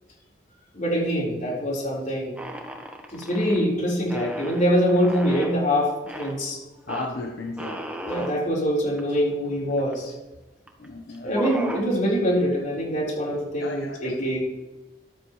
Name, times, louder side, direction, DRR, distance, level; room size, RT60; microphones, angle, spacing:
voice 1, 0.7-2.3 3.1-6.6 8.0-10.1 11.2-14.4, equal, 45° left, -4 dB, 4.5 m, -24 dB
sound 1, 2.4-3.6 4.1-5.6 6.1-6.4 6.9-7.1 7.6-8.3 9.0-9.1 9.3-10.0 10.7-10.8 11.1-11.9, equal, 10° right, 1.4 m, -35 dB
voice 2, 6.9-7.8 10.8-11.4 13.6-14.4, left 2 dB, 65° left, 1 dB, 1.2 m, -34 dB
13.5 x 12.5 x 3.3 m, 1.1 s
head